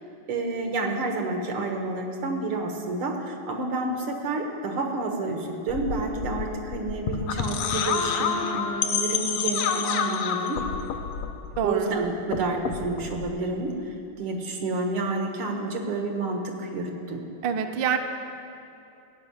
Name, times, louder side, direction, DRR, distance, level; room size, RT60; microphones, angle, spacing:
voice 1, 0.3-10.6 11.6-17.2, right 2 dB, 85° right, 2 dB, 2.3 m, -29 dB
sound 1, 5.7-11.9 12.2-13.3, left 6 dB, 85° left, 1.6 m, -29 dB
voice 2, 11.6-12.0 17.4-18.0, right 8 dB, 70° right, 5 dB, 1.3 m, -25 dB
16.0 x 5.6 x 9.7 m, 2.8 s
omnidirectional pair, 2.3 m